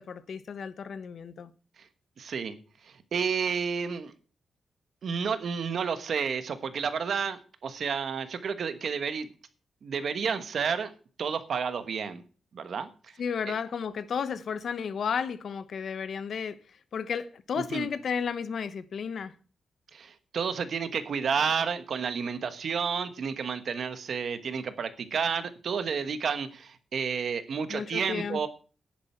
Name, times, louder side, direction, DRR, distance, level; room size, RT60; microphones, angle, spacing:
voice 1, 0.0-1.5 13.2-16.6 16.9-19.3 27.7-28.5, left 6 dB, 65° left, 0.9 m, -33 dB
voice 2, 2.2-2.5 3.1-4.1 5.0-9.3 9.8-10.9 11.2-12.2 12.5-12.9 17.7-17.9 19.9-28.5, right 6 dB, 60° right, 1.3 m, -30 dB
10.5 x 10.5 x 4.5 m
wide cardioid pair, 125°, 0 cm